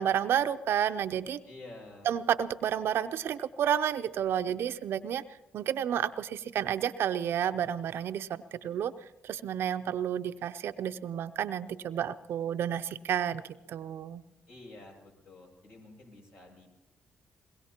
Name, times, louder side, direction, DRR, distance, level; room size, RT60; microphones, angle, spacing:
voice 1, 0.0-1.4 2.1-5.2 5.5-8.9 9.2-14.2, right 9 dB, 70° right, 11 dB, 0.6 m, -31 dB
voice 2, 1.4-2.2 14.5-16.7, left 2 dB, 65° left, -1 dB, 7.3 m, -50 dB
23.0 x 21.5 x 2.9 m, 0.92 s
supercardioid pair, 65°, 4 cm